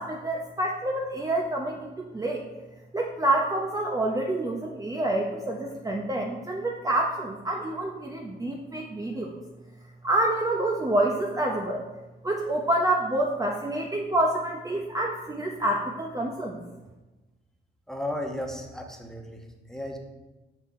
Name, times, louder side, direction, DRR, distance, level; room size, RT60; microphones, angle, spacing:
voice 1, 0.0-2.4 2.9-9.3 10.0-11.8 12.2-16.6, right 1 dB, 15° right, 0 dB, 0.7 m, -27 dB
voice 2, 17.9-20.0, left 1 dB, ahead, 2 dB, 1.1 m, -35 dB
6.1 x 6.0 x 4.2 m, 1.1 s
cardioid pair, 90°, 20 cm